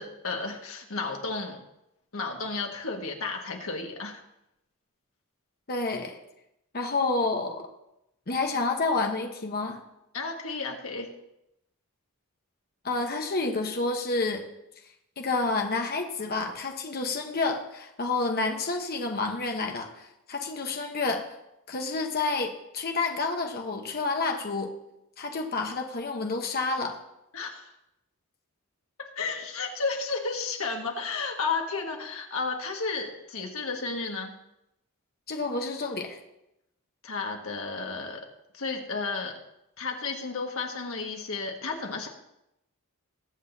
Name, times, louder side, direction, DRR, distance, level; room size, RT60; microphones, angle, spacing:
voice 1, 0.0-1.6 2.1-4.2 10.1-11.1 27.3-27.7 29.2-34.3 37.0-38.2 38.5-39.3 39.8-42.1, left 4 dB, 70° left, 2 dB, 1.7 m, -32 dB
voice 2, 5.7-6.2 6.7-7.7 8.3-9.8 12.8-14.4 15.2-21.2 21.7-24.7 25.2-27.0 35.3-36.2, left 3 dB, 45° left, 3 dB, 1.1 m, -29 dB
21.5 x 8.0 x 2.8 m, 0.85 s
head